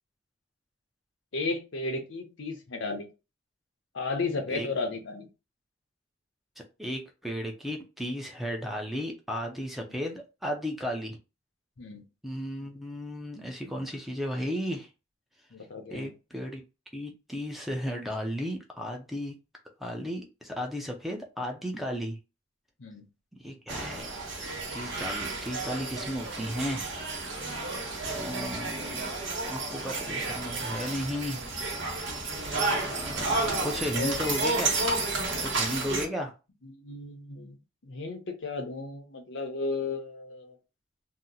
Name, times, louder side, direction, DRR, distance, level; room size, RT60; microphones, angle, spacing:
voice 1, 1.3-3.1 3.9-5.3 9.9-10.0 11.8-12.1 15.5-16.1 22.8-23.1 28.4-28.6 33.2-34.2 36.6-37.6 37.8-40.5, left 3 dB, 80° left, 5 dB, 0.7 m, -34 dB
voice 2, 6.8-11.2 12.2-14.9 15.9-16.6 16.9-19.3 19.8-22.2 23.4-24.1 24.7-26.9 28.1-29.1 29.4-31.5 32.9-34.8 35.5-36.3, equal, ahead, 2 dB, 0.5 m, -34 dB
sound 1, 23.7-36.1, right 3 dB, 80° right, 1.1 m, -31 dB
2.8 x 2.0 x 3.7 m, 0.29 s
head